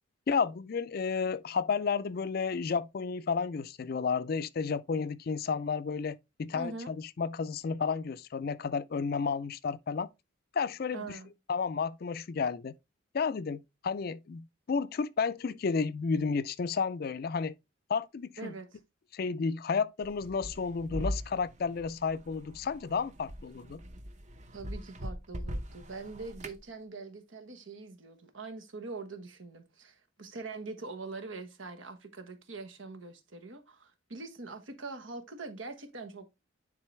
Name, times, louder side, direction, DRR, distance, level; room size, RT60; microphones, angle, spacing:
voice 1, 0.3-10.1 10.5-11.0 11.5-12.7 13.1-17.5 17.9-18.5 19.1-23.8, left 5 dB, 50° left, 0.4 m, -32 dB
voice 2, 6.5-6.9 10.9-11.3 18.4-18.8 24.5-36.3, right 3 dB, 80° right, 1.3 m, -43 dB
sound 1, 20.0-26.6, equal, 40° right, 0.8 m, -41 dB
9.7 x 3.8 x 3.2 m
head